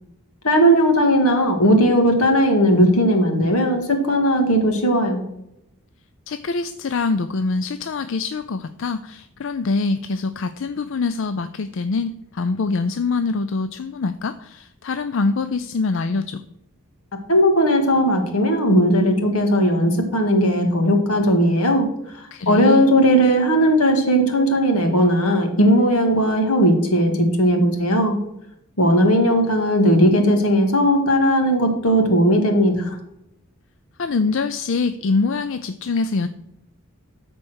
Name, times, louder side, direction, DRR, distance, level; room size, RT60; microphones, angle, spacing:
voice 1, 0.4-5.2 17.3-21.9 22.1-28.2 28.8-33.0, equal, 80° left, 4 dB, 2.0 m, -17 dB
voice 2, 6.3-16.4 22.3-22.9 34.0-36.3, left 4 dB, 60° left, 11 dB, 0.4 m, -24 dB
13.5 x 4.5 x 6.3 m, 0.82 s
head